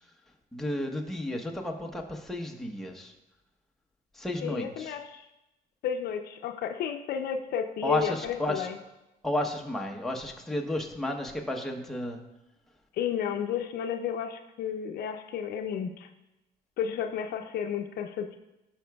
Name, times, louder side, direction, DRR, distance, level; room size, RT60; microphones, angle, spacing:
voice 1, 0.5-3.1 4.1-5.0 7.8-8.7 9.2-12.2, left 1 dB, ahead, 1 dB, 0.9 m, -32 dB
voice 2, 4.4-5.2 5.8-8.8 13.0-16.1 16.8-18.4, left 8 dB, 70° left, 7 dB, 0.6 m, -32 dB
14.0 x 5.8 x 2.3 m, 0.98 s
cardioid pair, 110°, 17 cm